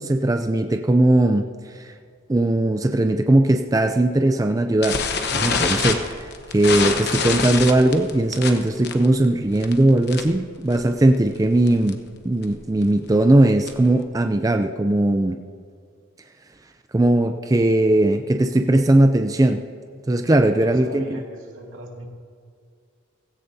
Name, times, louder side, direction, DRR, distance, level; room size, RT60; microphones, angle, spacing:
voice 1, 0.0-1.5 1.7-1.9 2.3-5.0 5.3-6.3 6.5-12.0 12.2-15.4 16.9-19.6 20.1-21.2, right 1 dB, 15° right, 6 dB, 0.4 m, -19 dB
sound 1, 4.8-10.4 10.7-11.0 11.3-11.4 11.7-11.9 12.4-14.0, left 5 dB, 55° left, 1.0 m, -25 dB
voice 2, 20.5-22.1, right 1 dB, 80° right, -1 dB, 2.3 m, -39 dB
17.5 x 16.5 x 2.8 m, 2.1 s
head